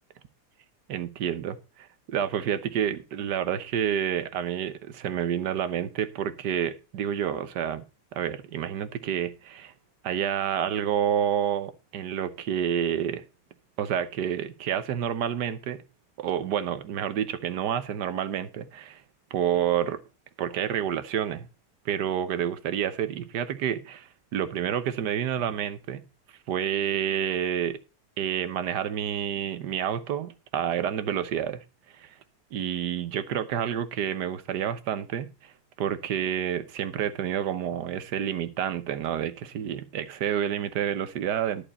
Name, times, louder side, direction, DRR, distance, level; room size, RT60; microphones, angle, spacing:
voice 1, 0.9-7.8 8.1-9.7 10.0-13.2 13.8-15.8 16.2-19.0 19.3-20.0 20.4-21.5 21.8-26.0 26.5-27.8 28.2-31.6 32.0-32.1 32.5-35.5 35.8-41.7, right 9 dB, 85° right, 1.5 m, -29 dB
11.0 x 7.0 x 4.2 m
omnidirectional pair, 1.7 m